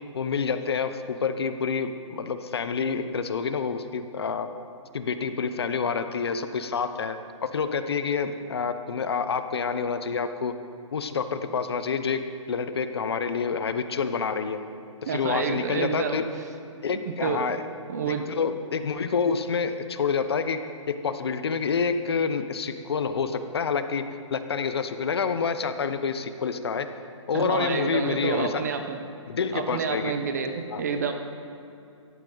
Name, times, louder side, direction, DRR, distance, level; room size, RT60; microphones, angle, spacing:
voice 1, 0.1-4.5 4.9-10.5 10.9-12.2 12.5-14.6 15.0-16.2 16.8-17.6 18.1-20.6 21.0-26.9 27.3-28.7 29.3-30.1 30.7-30.8, left 5 dB, 50° left, 10 dB, 0.8 m, -28 dB
voice 2, 15.1-16.2 17.0-17.4 17.9-18.3 27.3-29.0 29.5-31.1, right 6 dB, 30° right, 6 dB, 0.9 m, -29 dB
17.5 x 14.0 x 4.0 m, 2.6 s
hypercardioid pair, 175°, 16 cm